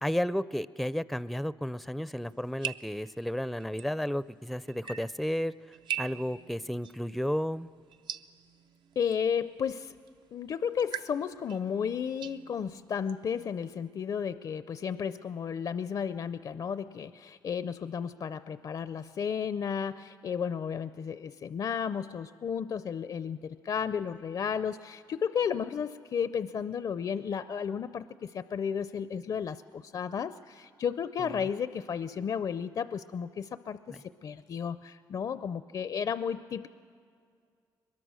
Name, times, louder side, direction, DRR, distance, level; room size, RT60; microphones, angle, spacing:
voice 1, 0.0-5.5 6.0-7.7 31.2-31.5 33.9-34.0, equal, ahead, 16 dB, 0.4 m, -32 dB
sound 1, 2.2-13.9, right 9 dB, 70° right, 0.6 m, -44 dB
voice 2, 9.0-10.0 10.3-36.7, left 7 dB, 55° left, 14 dB, 0.5 m, -33 dB
23.0 x 21.5 x 6.3 m, 2.2 s
cardioid pair, 75°, 8 cm